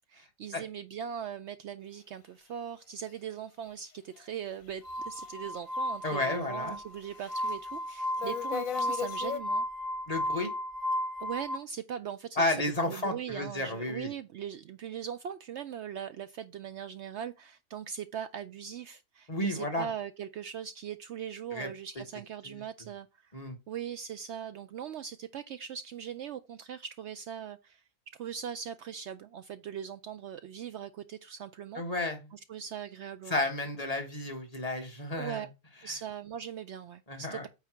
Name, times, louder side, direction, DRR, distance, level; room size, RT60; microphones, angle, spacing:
voice 1, 0.1-9.7 11.2-12.4 12.8-23.3 23.7-27.8 28.1-31.8 32.3-33.4 35.2-35.5 35.8-37.5, right 8 dB, 65° right, 0.7 m, -40 dB
Glass, 4.8-11.6, left 1 dB, 50° right, 1.3 m, -34 dB
sound 1, 4.9-5.0 5.7-5.8 6.1-6.7 7.2-7.5 7.9-9.4, left 7 dB, 80° left, 1.3 m, -36 dB
voice 2, 6.0-6.8 10.1-10.5 12.4-14.1 19.3-19.9 21.5-21.7 22.4-22.6 23.3-23.6 31.7-32.2 33.3-35.5 37.1-37.5, left 2 dB, 30° left, 1.5 m, -32 dB
8.9 x 3.2 x 6.0 m
omnidirectional pair, 1.4 m